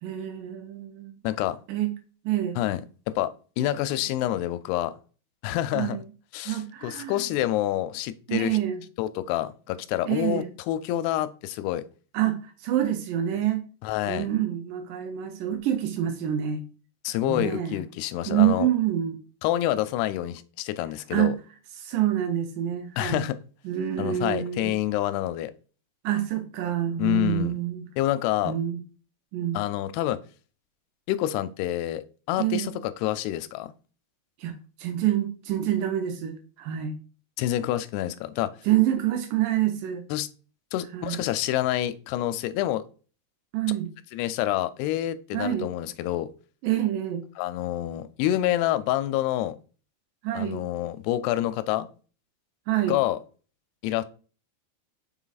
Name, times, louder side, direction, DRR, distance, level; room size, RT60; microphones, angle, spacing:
voice 1, 0.0-1.2 1.7-1.9 2.2-2.6 5.7-6.0 6.4-7.2 8.3-8.8 10.1-10.5 12.1-13.7 14.1-16.7 17.2-17.8 18.3-19.2 21.1-21.3 21.8-23.3 23.7-24.8 26.0-27.8 28.4-28.8 29.3-29.6 32.4-32.8 34.4-37.0 38.7-40.0 40.9-41.2 43.5-43.9 45.3-45.7 46.6-47.2 50.2-50.7 52.7-53.0, right 11 dB, 85° right, 1.9 m, -27 dB
voice 2, 1.2-1.6 2.6-2.8 3.1-4.9 5.4-6.0 6.3-8.6 9.0-11.8 13.8-14.3 17.0-18.7 19.4-21.3 23.0-23.4 24.0-25.5 27.0-27.6 28.0-28.5 29.5-30.2 31.1-32.0 32.3-33.7 37.4-38.5 40.1-40.3 40.7-42.8 44.1-46.3 47.4-49.6 50.3-51.9 52.9-53.2 53.8-54.0, left 13 dB, 85° left, 2.5 m, -27 dB
6.1 x 4.0 x 4.0 m
omnidirectional pair, 4.6 m